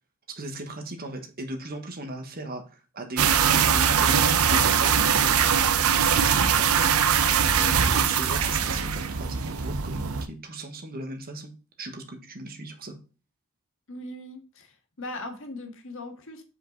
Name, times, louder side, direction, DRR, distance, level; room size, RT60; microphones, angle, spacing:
voice 1, 0.3-5.4 5.9-11.5 11.8-12.9, right 1 dB, 45° right, 5 dB, 1.3 m, -37 dB
sound 1, 3.2-10.3, right 7 dB, 75° right, 0.7 m, -22 dB
voice 2, 13.9-16.4, left 1 dB, 65° left, 4 dB, 1.7 m, -39 dB
7.6 x 5.0 x 4.0 m, 0.34 s
head